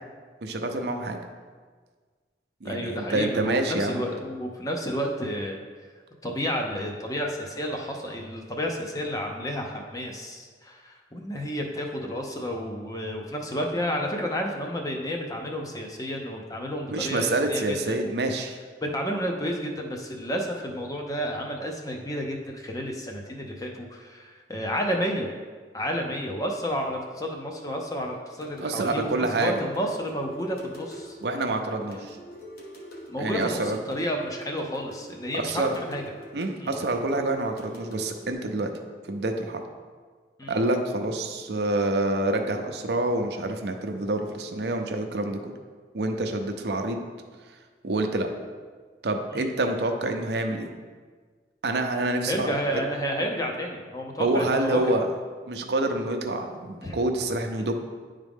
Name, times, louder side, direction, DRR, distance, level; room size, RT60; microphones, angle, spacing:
voice 1, 0.4-1.2 2.6-4.1 16.9-18.6 28.6-29.6 31.2-32.2 33.2-33.8 35.3-35.7 36.3-38.7 39.1-39.6 40.5-45.5 45.9-47.0 47.8-48.3 49.0-50.7 51.6-52.8 54.2-55.1 55.5-57.7, right 2 dB, 70° right, 5 dB, 0.6 m, -27 dB
voice 2, 2.6-5.6 6.2-18.0 18.8-25.3 25.7-31.2 31.9-32.0 33.1-36.0 36.6-36.8 40.4-40.6 49.3-49.5 52.2-54.8 56.8-57.0, equal, 20° left, 1 dB, 0.7 m, -31 dB
sound 1, 28.4-38.3, equal, 55° left, 1.1 m, -45 dB
10.0 x 3.7 x 3.6 m, 1.5 s
head